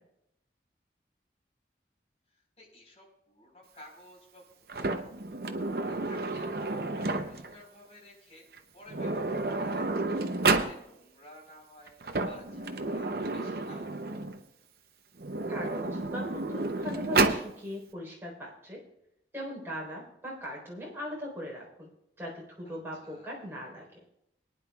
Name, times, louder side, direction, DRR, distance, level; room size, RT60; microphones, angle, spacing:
voice 1, 2.3-9.9 10.5-13.9 22.6-23.4, left 1 dB, 35° left, -2 dB, 4.3 m, -54 dB
Sliding door, 4.7-7.6 8.5-8.6 8.9-10.8 11.9-14.4 15.2-17.5, right 3 dB, 60° right, 0.7 m, -30 dB
voice 2, 15.5-18.8 19.3-21.9 22.2-23.9, equal, 15° right, -4 dB, 4.0 m, -39 dB
23.0 x 10.0 x 2.4 m, 0.80 s
head